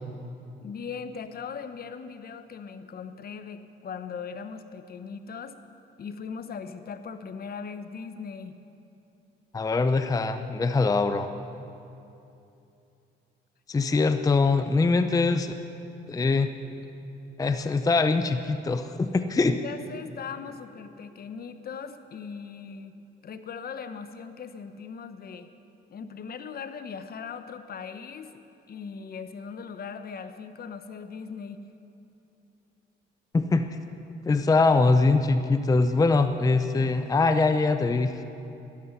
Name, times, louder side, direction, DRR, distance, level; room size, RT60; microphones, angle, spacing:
voice 1, 0.6-5.5 6.0-8.6 19.6-23.0 23.2-25.5 25.9-28.4 28.7-31.6, left 6 dB, 50° left, 10 dB, 0.8 m, -39 dB
voice 2, 9.5-11.3 13.7-15.5 16.1-16.5 17.4-19.6 33.3-33.7 34.3-38.2, left 3 dB, 20° left, 9 dB, 0.5 m, -23 dB
13.0 x 11.0 x 5.8 m, 2.8 s
cardioid pair, 90°, 20 cm